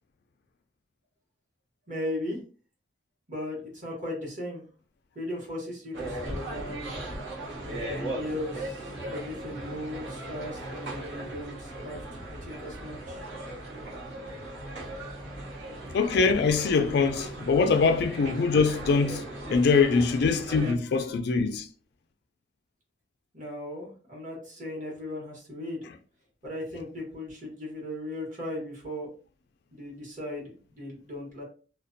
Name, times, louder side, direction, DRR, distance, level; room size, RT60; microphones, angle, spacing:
voice 1, 1.9-2.4 3.3-4.6 5.1-6.9 7.6-13.2 23.3-25.9 26.4-29.1 29.7-31.4, left 1 dB, 45° right, 1.1 m, -37 dB
sound 1, 5.9-20.7, right 1 dB, 80° right, 1.0 m, -38 dB
voice 2, 15.9-19.2 19.5-21.7, left 4 dB, 60° left, 0.3 m, -23 dB
2.5 x 2.1 x 2.5 m
head